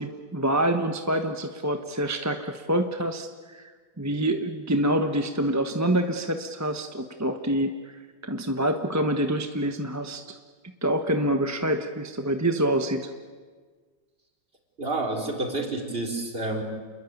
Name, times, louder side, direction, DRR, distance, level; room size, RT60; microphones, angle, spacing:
voice 1, 0.0-10.2 10.8-13.1, right 1 dB, 10° right, 6 dB, 0.9 m, -26 dB
voice 2, 14.8-16.6, right 2 dB, 30° right, 2 dB, 4.3 m, -29 dB
28.5 x 21.5 x 9.4 m, 1.5 s
omnidirectional pair, 1.9 m